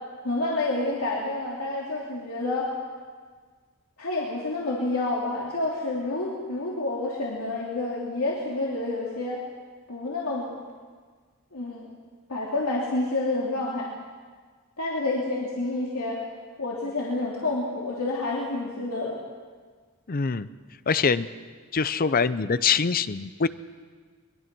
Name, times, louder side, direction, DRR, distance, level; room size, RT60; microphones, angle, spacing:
voice 1, 0.2-2.7 4.0-9.4 9.9-10.5 11.5-11.9 12.3-13.9 14.8-16.2 16.6-19.2, left 2 dB, 85° left, -4 dB, 3.0 m, -29 dB
voice 2, 20.1-20.5 20.9-21.3 21.7-23.5, left 5 dB, 40° left, 14 dB, 0.6 m, -24 dB
22.5 x 22.0 x 6.1 m, 1.5 s
head